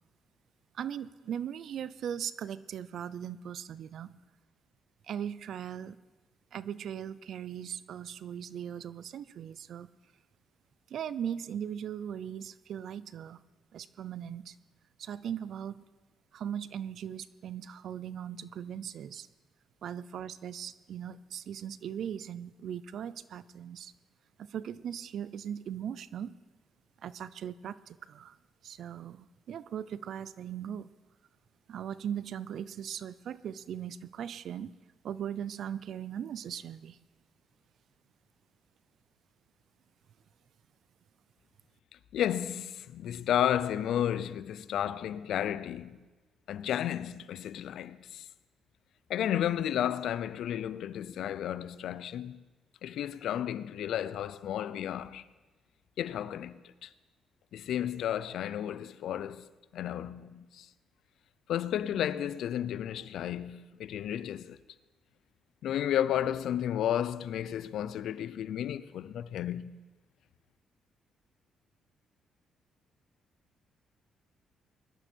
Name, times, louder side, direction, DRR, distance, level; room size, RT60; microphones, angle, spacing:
voice 1, 0.7-4.1 5.0-6.0 6.5-9.9 10.9-13.4 13.7-14.6 15.0-15.8 16.3-19.3 19.8-23.9 24.4-26.3 27.0-28.4 28.6-30.9 31.7-34.7 35.0-37.0, right 9 dB, 65° right, 0.6 m, -39 dB
voice 2, 42.1-46.0 46.5-48.3 49.1-52.4 52.8-55.2 56.0-56.9 57.5-60.7 61.5-64.6 65.6-69.8, left 10 dB, 75° left, 0.5 m, -32 dB
21.0 x 11.5 x 4.5 m
cardioid pair, 90°, 0 cm